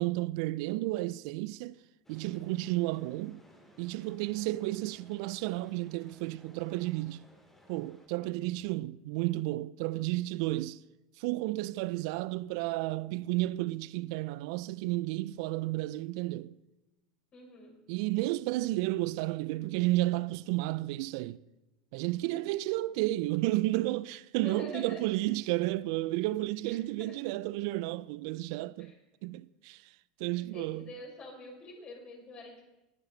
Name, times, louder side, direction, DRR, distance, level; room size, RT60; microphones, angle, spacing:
voice 1, 0.0-1.7 2.1-3.4 3.8-7.3 7.7-10.8 11.2-16.5 17.9-21.4 21.9-28.9 29.2-29.9 30.2-30.9, right 18 dB, 65° right, 0.4 m, -32 dB
sound 1, 2.0-8.1, equal, 10° left, 3.3 m, -60 dB
voice 2, 17.3-17.8 22.3-22.4 22.7-22.8 24.4-25.1 27.0-27.2 28.8-28.9 30.3-32.6, left 2 dB, 35° left, 5.8 m, -46 dB
19.0 x 10.5 x 4.0 m
hypercardioid pair, 95°, 3 cm